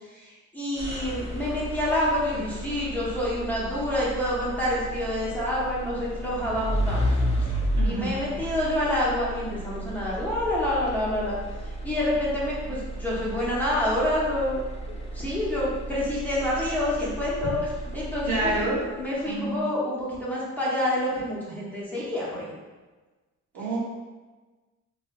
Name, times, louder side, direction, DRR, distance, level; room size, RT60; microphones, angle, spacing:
voice 1, 0.1-7.0 7.4-7.5 7.8-11.4 11.8-14.6 15.1-17.6 17.9-18.5 19.0-22.4, left 1 dB, 5° left, -8 dB, 0.8 m, -27 dB
sound 1, 0.8-19.0, equal, 20° left, 0.4 m, -33 dB
voice 2, 7.7-8.1 18.3-18.8 19.2-19.6 23.5-23.8, right 2 dB, 70° right, -6 dB, 1.1 m, -27 dB
2.8 x 2.3 x 2.5 m, 1.3 s
cardioid pair, 90°, 30 cm